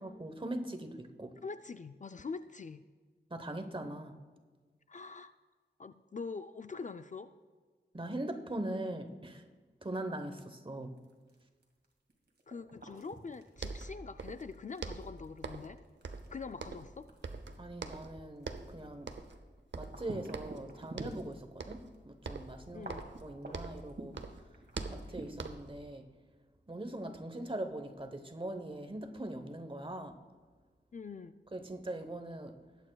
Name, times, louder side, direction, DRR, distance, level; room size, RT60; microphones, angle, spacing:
voice 1, 0.0-1.4 3.3-4.2 7.9-9.4 9.8-10.9 17.6-19.1 19.7-22.9 23.2-24.2 24.9-26.0 26.7-30.2 31.5-32.6, right 1 dB, 30° right, 6 dB, 1.0 m, -41 dB
voice 2, 1.4-2.8 4.9-5.3 5.8-7.3 12.5-15.8 16.3-17.1 22.7-23.1 30.9-31.4, left 4 dB, 45° left, 10 dB, 0.4 m, -44 dB
sound 1, 11.0-21.6 21.9-22.0 22.5-25.6, right 2 dB, 60° right, 2.1 m, -49 dB
sound 2, 13.3-13.4 13.6-14.5 14.8-15.8 16.0-17.0 17.2-18.1 18.4-18.7 19.1-19.4 19.7-20.7 21.0-21.3 21.6-21.9 22.2-23.9 24.1-25.8, right 4 dB, 85° right, 0.7 m, -43 dB
19.5 x 8.8 x 2.3 m, 1.5 s
wide cardioid pair, 75°, 18 cm